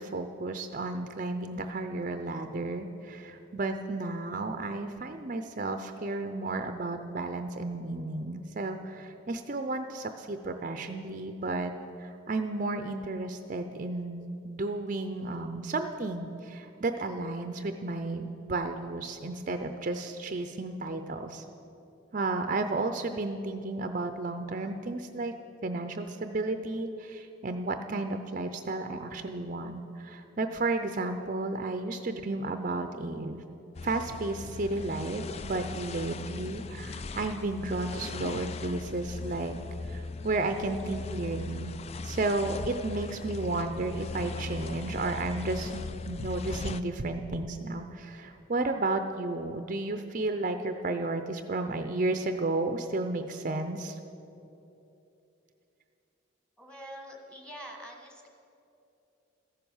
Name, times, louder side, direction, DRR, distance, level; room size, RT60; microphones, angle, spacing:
voice 1, 0.0-11.7 12.0-21.4 22.1-25.3 25.6-33.4 33.8-39.6 39.9-41.7 42.0-54.0, right 2 dB, 40° right, 7 dB, 0.6 m, -33 dB
sound 1, 33.7-46.8, left 3 dB, 30° left, 0.3 m, -39 dB
voice 2, 56.6-58.3, equal, 5° left, 1 dB, 1.6 m, -45 dB
14.5 x 11.0 x 7.1 m, 2.9 s
head